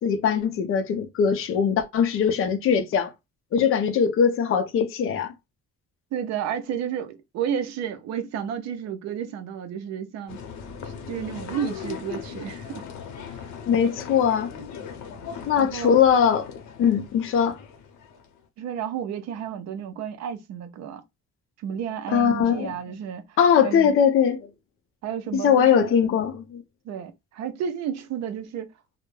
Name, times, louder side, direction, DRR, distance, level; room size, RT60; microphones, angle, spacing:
voice 1, 0.0-3.1 3.5-5.3 13.7-14.5 15.5-17.6 22.1-22.8 23.4-24.5 25.3-26.6, left 7 dB, 45° left, 0.5 m, -21 dB
voice 2, 6.1-10.4 10.8-12.8 15.6-16.0 18.6-21.0 21.6-24.0 25.0-25.9 26.8-28.7, right 8 dB, 65° right, 0.5 m, -32 dB
sound 1, 10.3-18.4, left 7 dB, 80° left, 0.7 m, -39 dB
2.2 x 2.1 x 3.0 m
cardioid pair, 160°, 29 cm